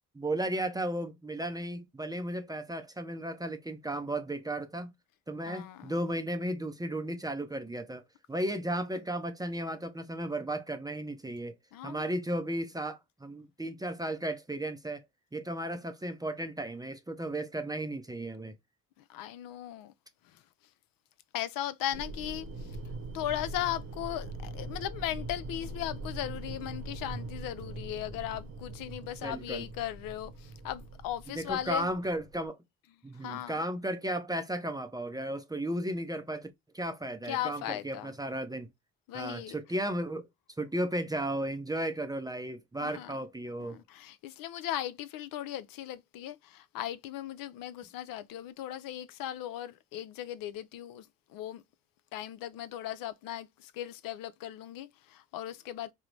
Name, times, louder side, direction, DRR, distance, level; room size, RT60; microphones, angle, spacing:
voice 1, 0.1-4.9 5.3-8.0 8.3-11.6 11.8-15.1 15.3-18.5 29.2-29.7 31.3-32.6 33.0-36.5 36.7-38.7 39.1-40.3 40.6-43.8, right 1 dB, 10° right, 0.5 m, -34 dB
voice 2, 5.5-6.0 11.7-12.1 19.1-19.9 20.3-20.4 21.3-22.8 23.1-31.9 33.2-33.6 37.2-38.1 39.1-39.6 42.8-43.2 43.6-51.6 52.1-55.9, left 12 dB, 60° left, 0.5 m, -37 dB
sound 1, 21.9-32.5, right 2 dB, 45° right, 0.8 m, -42 dB
3.7 x 2.0 x 3.1 m
supercardioid pair, 70°, 38 cm